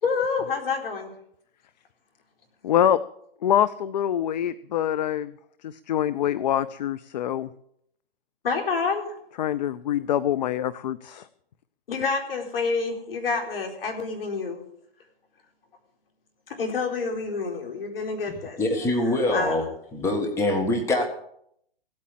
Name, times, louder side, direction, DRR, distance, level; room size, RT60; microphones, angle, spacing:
voice 1, 0.0-1.1 8.4-9.2 11.9-14.6 16.5-18.6 19.3-19.6, left 4 dB, 65° left, 3 dB, 4.2 m, -28 dB
voice 2, 2.6-3.0 3.4-5.3 5.6-7.5 9.4-11.3, left 10 dB, 45° left, 15 dB, 0.5 m, -25 dB
voice 3, 18.3-19.6 19.9-21.1, left 1 dB, 10° left, 2 dB, 1.7 m, -24 dB
16.5 x 8.6 x 7.5 m, 0.71 s
hypercardioid pair, 140°, 31 cm